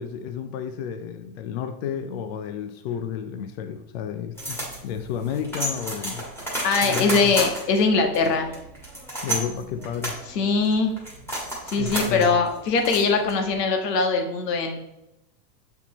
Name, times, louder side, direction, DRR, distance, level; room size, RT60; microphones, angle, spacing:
voice 1, 0.0-6.3 6.8-7.3 9.2-10.2 11.8-12.4, left 8 dB, 40° left, 8 dB, 0.4 m, -31 dB
sound 1, 4.4-13.6, right 1 dB, 5° left, 1.7 m, -32 dB
voice 2, 6.6-8.5 10.3-10.9 11.7-14.8, left 4 dB, 75° left, 5 dB, 1.5 m, -22 dB
7.4 x 4.6 x 3.9 m, 0.89 s
supercardioid pair, 160°, 49 cm